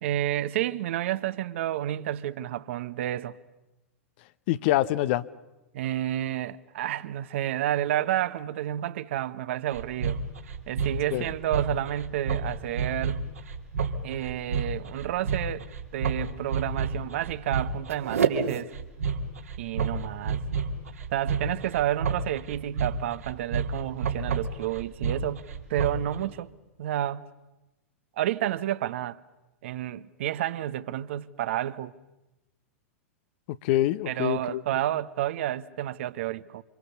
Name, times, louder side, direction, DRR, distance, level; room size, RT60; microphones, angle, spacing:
voice 1, 0.0-3.4 5.7-10.2 10.7-13.2 14.0-15.7 15.9-18.7 19.6-20.4 21.1-25.4 25.7-26.5 26.8-27.3 28.2-29.2 29.6-31.9 34.1-36.6, right 12 dB, 60° right, 1.1 m, -30 dB
voice 2, 4.5-5.2 11.1-11.2 33.5-34.6, left 14 dB, 50° left, 1.0 m, -25 dB
sound 1, 9.7-26.1, right 5 dB, 75° right, 2.7 m, -30 dB
28.5 x 26.5 x 7.0 m
figure-of-eight pair, 95°, 8 cm